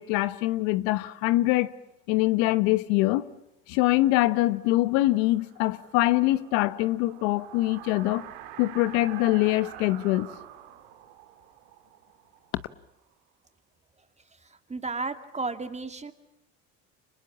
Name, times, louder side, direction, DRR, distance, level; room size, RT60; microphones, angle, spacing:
voice 1, 0.0-1.7 2.1-3.2 3.7-8.3 8.6-10.3, left 17 dB, 80° left, 1.2 m, -24 dB
sound 1, 4.3-13.1, right 12 dB, 85° right, 2.4 m, -47 dB
voice 2, 14.7-16.1, right 3 dB, 20° right, 2.4 m, -33 dB
29.5 x 26.5 x 7.3 m
supercardioid pair, 90°, 35 cm